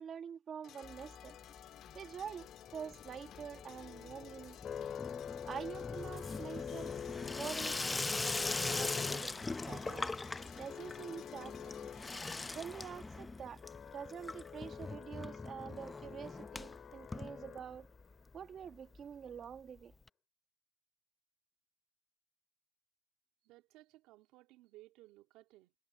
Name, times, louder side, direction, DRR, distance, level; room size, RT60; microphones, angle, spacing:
voice 1, 0.0-1.3 1.9-4.6 5.5-6.9 7.3-9.4 9.7-10.1 10.6-11.8 12.5-13.6 13.9-17.9 18.3-19.9, right 7 dB, 35° right, 2.2 m, -46 dB
sound 1, 0.6-12.6, left 11 dB, 55° left, 1.8 m, -55 dB
Water tap faucet / Sink (filling or washing), 0.8-1.6 1.9-2.4 2.7-18.0 18.3-18.4 18.6-18.7 18.9-19.0 20.1-20.2, left 3 dB, 15° left, 0.7 m, -41 dB
sound 2, 1.8-18.0, left 8 dB, 40° left, 3.1 m, -47 dB
voice 2, 23.4-25.7, right 17 dB, 85° right, 3.2 m, -60 dB
cardioid pair, 145°, 0 cm